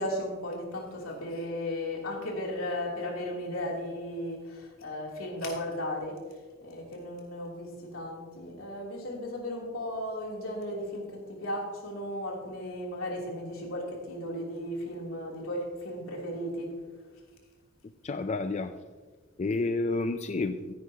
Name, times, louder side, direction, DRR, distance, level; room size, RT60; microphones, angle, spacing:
voice 1, 0.0-6.2 6.6-16.7, left 1 dB, 75° left, -2 dB, 3.1 m, -35 dB
voice 2, 18.0-18.7 19.4-20.7, left 3 dB, 35° left, 8 dB, 0.4 m, -30 dB
15.5 x 10.0 x 2.9 m, 1.4 s
head